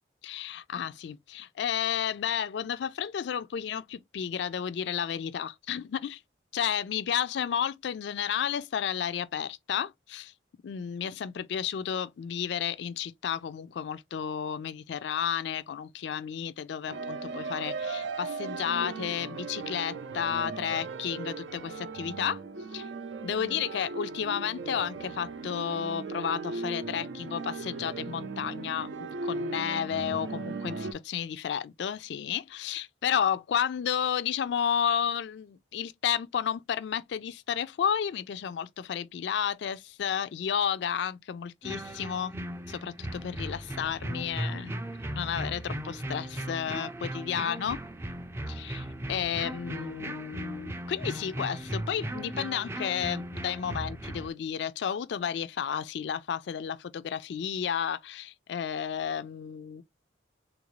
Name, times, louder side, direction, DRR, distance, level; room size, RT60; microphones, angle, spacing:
voice 1, 0.2-6.2 6.5-10.3 10.6-22.4 22.7-22.9 23.2-42.3 42.7-44.7 45.1-47.8 48.5-59.8, left 8 dB, 70° left, 0.3 m, -32 dB
sound 1, 16.9-30.9, right 4 dB, 75° right, 0.5 m, -37 dB
sound 2, 41.6-54.3, right 1 dB, 15° right, 0.3 m, -37 dB
3.4 x 2.5 x 3.0 m
head